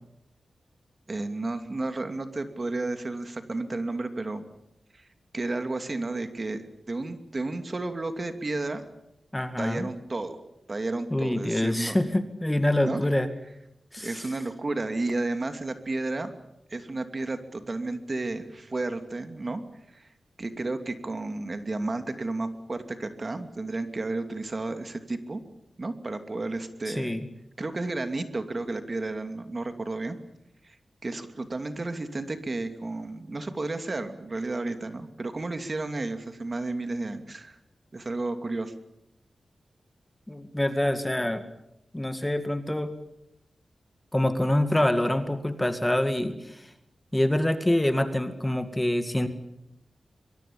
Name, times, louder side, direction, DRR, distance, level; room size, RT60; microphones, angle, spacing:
voice 1, 1.1-4.5 4.9-5.1 5.3-8.8 9.6-10.4 10.7-12.0 12.8-13.0 14.0-16.3 16.7-19.6 19.9-20.1 20.4-25.4 25.8-27.2 27.6-30.2 30.6-30.8 31.0-37.6 37.9-38.7, right 2 dB, 40° right, 8 dB, 2.7 m, -32 dB
voice 2, 9.3-9.9 11.1-13.3 13.9-14.3 26.9-27.3 40.3-41.4 41.9-42.9 44.1-46.7 47.1-49.3, left 1 dB, 10° left, 9 dB, 2.1 m, -26 dB
23.5 x 22.5 x 8.7 m, 0.84 s
wide cardioid pair, 85°, 0 cm